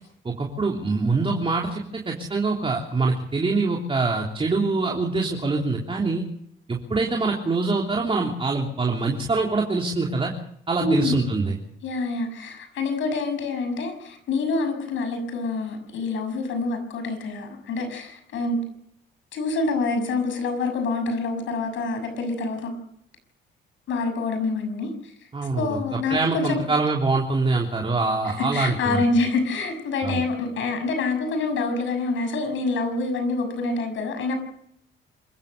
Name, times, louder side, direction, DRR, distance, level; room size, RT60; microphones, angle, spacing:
voice 1, 0.2-6.2 6.7-10.3 10.7-11.5 25.3-29.0 30.0-30.2, right 3 dB, 25° right, 0 dB, 3.3 m, -24 dB
voice 2, 10.8-11.2 11.8-18.6 19.3-22.7 23.9-25.1 25.5-26.6 28.4-34.4, left 3 dB, 75° left, 7 dB, 6.6 m, -26 dB
26.0 x 15.0 x 6.6 m, 0.72 s
cardioid pair, 90°, 20 cm